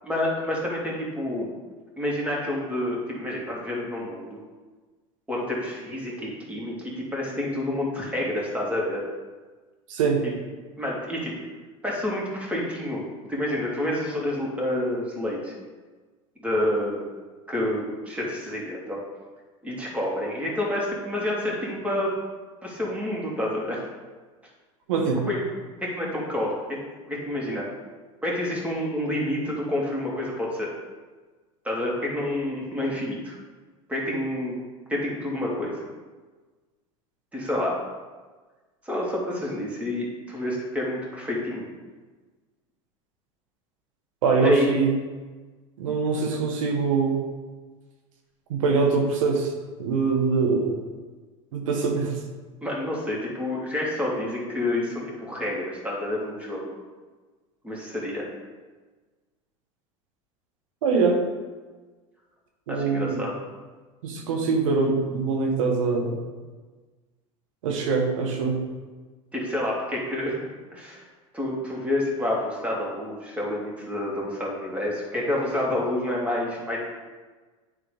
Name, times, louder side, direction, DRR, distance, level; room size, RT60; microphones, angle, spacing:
voice 1, 0.0-1.5 2.0-4.4 5.3-9.0 10.2-10.3 10.8-11.3 11.8-13.0 13.3-15.5 16.4-17.1 17.5-19.0 19.6-22.1 22.6-23.8 25.3-25.4 25.8-26.8 27.1-27.7 28.2-30.7 31.6-33.4 33.9-34.6 34.9-35.8 37.3-37.8 38.8-41.7 44.4-44.7 52.6-56.6 57.6-58.3 62.7-63.3 69.3-71.0 71.3-76.8, left 1 dB, 10° right, -4 dB, 2.6 m, -28 dB
voice 2, 9.9-10.2 24.9-25.2 44.2-44.9 45.8-47.2 48.5-49.5 49.8-50.8 51.5-52.2 60.8-61.2 62.7-63.2 64.0-66.2 67.6-68.6, right 4 dB, 85° right, 2 dB, 1.4 m, -23 dB
10.0 x 3.8 x 5.1 m, 1.3 s
supercardioid pair, 95°, 16 cm